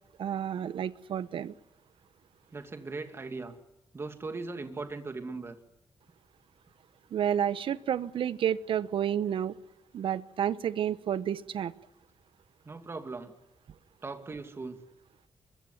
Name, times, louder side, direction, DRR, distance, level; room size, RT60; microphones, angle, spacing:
voice 1, 0.2-1.5 7.1-9.6 9.9-11.7, right 9 dB, 65° right, 15 dB, 1.1 m, -30 dB
voice 2, 2.5-3.6 3.9-5.6 12.6-13.3 14.0-14.8, right 3 dB, 25° right, 7 dB, 2.6 m, -39 dB
24.5 x 22.5 x 9.9 m, 0.90 s
wide cardioid pair, 155°, 9 cm